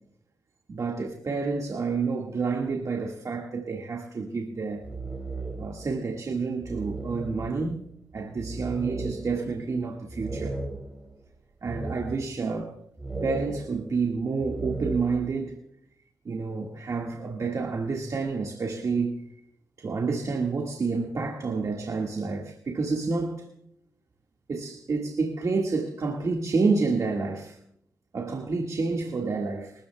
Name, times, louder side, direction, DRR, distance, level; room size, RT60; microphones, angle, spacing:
voice 1, 0.7-4.8 5.6-7.8 8.1-10.6 11.6-12.7 13.2-15.6 16.3-19.2 19.8-23.5 24.5-27.6 28.1-29.7, right 4 dB, 60° right, 0 dB, 1.8 m, -29 dB
sound 1, 4.6-5.9 6.3-6.4 6.6-11.1 11.7-12.5 13.0-15.3, right 3 dB, 20° right, 2.9 m, -36 dB
23.0 x 14.0 x 2.3 m, 0.72 s
cardioid pair, 65°, 6 cm